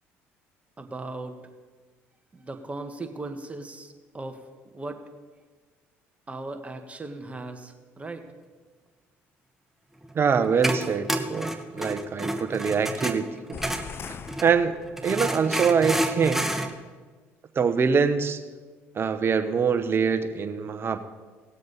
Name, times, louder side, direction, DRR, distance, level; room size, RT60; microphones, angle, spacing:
voice 1, 0.8-1.4 2.3-4.4 4.7-5.1 6.3-8.3, right 2 dB, 20° right, 6 dB, 1.5 m, -37 dB
sound 1, 10.0-14.5 15.0-16.7, right 1 dB, 5° right, 1.2 m, -30 dB
voice 2, 10.1-13.3 14.4-16.5 17.5-18.4 18.9-21.0, right 6 dB, 40° right, 9 dB, 1.0 m, -24 dB
sound 2, 13.5-15.4, left 6 dB, 40° left, 0.6 m, -41 dB
19.0 x 7.5 x 4.1 m, 1.4 s
supercardioid pair, 70°, 6 cm